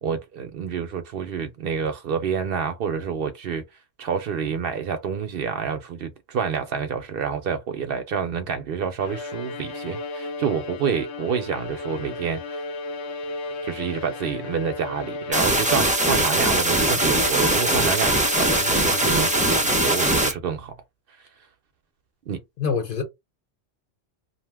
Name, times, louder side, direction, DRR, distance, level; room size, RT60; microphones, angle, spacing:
voice 1, 0.0-3.6 4.0-12.6 13.6-20.7 22.3-22.4, right 7 dB, 65° right, 0.7 m, -28 dB
Bowed string instrument, 9.0-20.0, left 3 dB, 80° left, 0.9 m, -35 dB
sound 1, 15.3-20.3, right 1 dB, 10° right, 0.5 m, -21 dB
voice 2, 22.6-23.0, left 6 dB, 55° left, 0.9 m, -26 dB
2.6 x 2.1 x 3.3 m
omnidirectional pair, 1.1 m